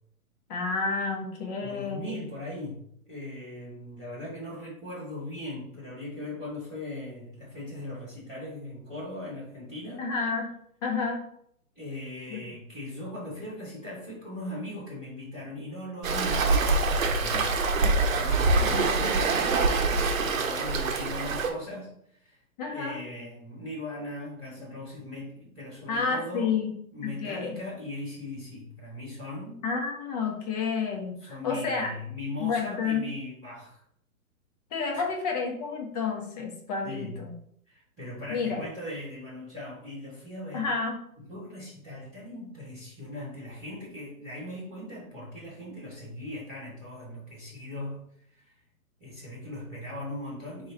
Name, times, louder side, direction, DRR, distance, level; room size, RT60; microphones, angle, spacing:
voice 1, 0.5-2.2 10.0-10.5 10.8-11.3 12.3-12.4 18.6-19.1 22.6-23.0 25.9-26.7 27.0-27.6 29.6-31.9 32.4-33.0 34.7-37.3 38.3-38.6 40.5-40.9, left 5 dB, 25° left, 1 dB, 0.9 m, -30 dB
voice 2, 1.6-10.1 11.7-17.5 18.0-26.5 26.9-29.7 31.2-33.8 34.9-35.1 36.8-37.2 37.7-40.7 41.2-48.0 48.3-48.5 49.0-50.7, left 1 dB, ahead, -20 dB, 0.4 m, -39 dB
Waves surf, 16.0-21.5, right 3 dB, 65° right, 1.0 m, -25 dB
4.8 x 2.9 x 3.8 m, 0.69 s
figure-of-eight pair, 130°, 44 cm